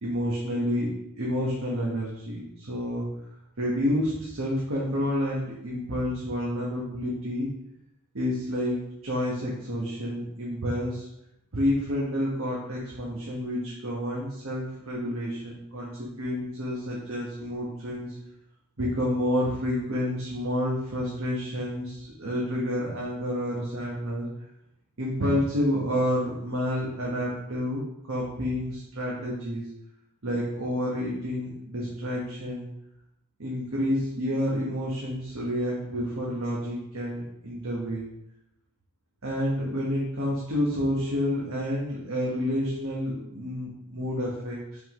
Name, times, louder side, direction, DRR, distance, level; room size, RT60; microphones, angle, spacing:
voice 1, 0.0-0.9 1.2-3.1 3.6-7.5 8.1-11.1 11.5-18.1 18.8-24.3 25.0-27.8 28.1-29.7 30.2-32.7 33.4-38.1 39.2-44.8, equal, 70° right, -5 dB, 1.2 m, -29 dB
5.6 x 5.5 x 3.1 m, 0.83 s
head